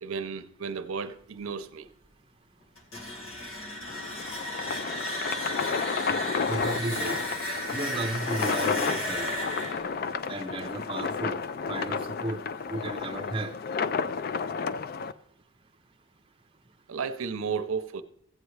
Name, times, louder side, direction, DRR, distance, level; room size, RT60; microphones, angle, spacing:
voice 1, 0.0-1.9 16.9-18.0, right 5 dB, 75° right, 0.6 m, -33 dB
sound 1, 2.8-11.6, equal, 70° left, 1.9 m, -35 dB
sound 2, 3.9-15.1, left 5 dB, 45° left, 0.3 m, -32 dB
sound 3, 6.5-8.8, right 1 dB, 20° left, 4.8 m, -54 dB
voice 2, 6.5-7.2 7.7-9.3 10.3-11.4 11.7-12.4 12.7-13.5, right 1 dB, 25° right, 0.6 m, -33 dB
15.0 x 8.1 x 3.2 m
head